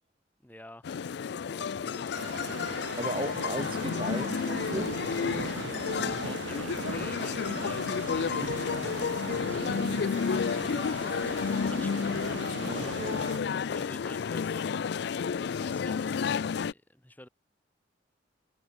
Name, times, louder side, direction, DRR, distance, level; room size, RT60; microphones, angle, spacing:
voice 1, 0.4-0.9 1.5-2.3 6.0-10.1 10.5-13.1 13.7-17.3, left 1 dB, 10° left, 2.3 m, -50 dB
sound 1, 0.8-16.7, left 6 dB, 60° left, 0.4 m, -31 dB
sound 2, 2.1-13.4, right 6 dB, 70° right, 0.4 m, -39 dB
voice 2, 3.0-4.9 12.5-13.5, right 1 dB, 30° right, 1.6 m, -36 dB
head